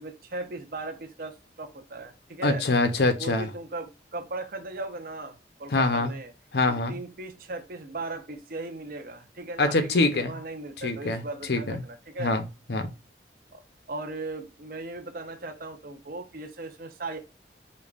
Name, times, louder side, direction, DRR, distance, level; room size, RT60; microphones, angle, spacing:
voice 1, 0.0-2.6 3.2-6.3 6.7-12.4 13.5-13.6 13.9-17.2, right 2 dB, 50° right, 0.7 m, -37 dB
voice 2, 2.4-3.5 5.7-6.1 6.5-7.0 9.6-10.3 10.8-11.2 11.5-11.8 12.2-12.9, left 2 dB, 65° left, 0.7 m, -24 dB
5.2 x 2.3 x 2.4 m
head